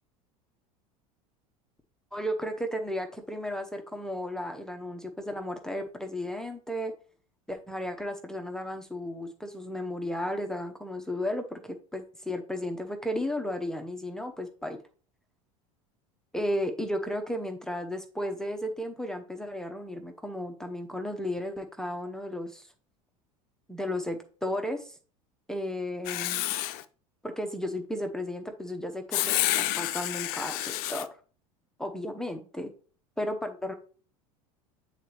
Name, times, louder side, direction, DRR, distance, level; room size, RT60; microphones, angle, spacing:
voice 1, 2.1-6.9 7.5-14.8 16.3-22.7 23.7-25.0 25.5-26.4 27.2-31.1 31.8-32.7 33.2-33.7, left 1 dB, 5° left, 5 dB, 0.8 m, -34 dB
Writing, 26.0-26.8 29.1-31.0, left 15 dB, 55° left, 0.5 m, -29 dB
8.0 x 4.0 x 3.2 m, 0.40 s
hypercardioid pair, 75°, 19 cm